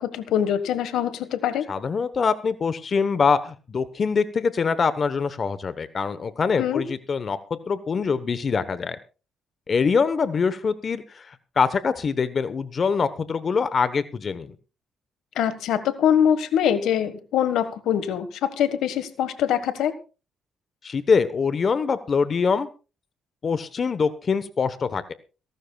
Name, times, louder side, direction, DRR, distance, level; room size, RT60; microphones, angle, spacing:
voice 1, 0.0-1.6 6.6-6.8 15.3-18.3 18.6-19.9, left 9 dB, 80° left, 11 dB, 1.5 m, -23 dB
voice 2, 1.7-9.0 9.7-14.5 20.8-22.7 23.4-25.1, left 5 dB, 45° left, 13 dB, 1.0 m, -24 dB
27.0 x 12.5 x 2.3 m, 0.34 s
cardioid pair, 90°, 0 cm